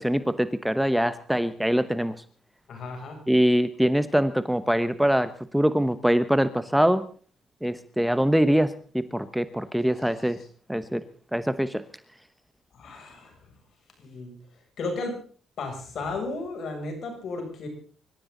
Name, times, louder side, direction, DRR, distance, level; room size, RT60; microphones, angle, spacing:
voice 1, 0.0-2.1 3.3-7.0 7.6-10.4 10.7-11.0 11.3-11.8, equal, 5° right, 13 dB, 1.1 m, -23 dB
voice 2, 2.7-3.2 12.7-13.3 14.0-14.3 14.8-15.1 15.6-17.7, left 3 dB, 60° left, 4 dB, 7.4 m, -34 dB
25.5 x 13.0 x 4.0 m, 0.42 s
cardioid pair, 90°, 0 cm